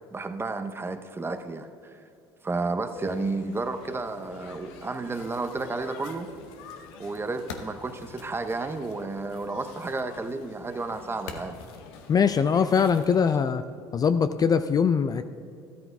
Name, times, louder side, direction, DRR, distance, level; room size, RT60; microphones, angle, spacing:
voice 1, 0.1-2.0 2.4-6.3 7.0-11.6, right 3 dB, 20° right, 8 dB, 0.7 m, -32 dB
sound 1, 2.9-13.4, left 5 dB, 70° left, 0.9 m, -45 dB
voice 2, 12.1-13.6 13.9-15.2, left 6 dB, 30° left, 11 dB, 0.4 m, -22 dB
13.0 x 13.0 x 2.3 m, 2.6 s
hypercardioid pair, 70°, 13 cm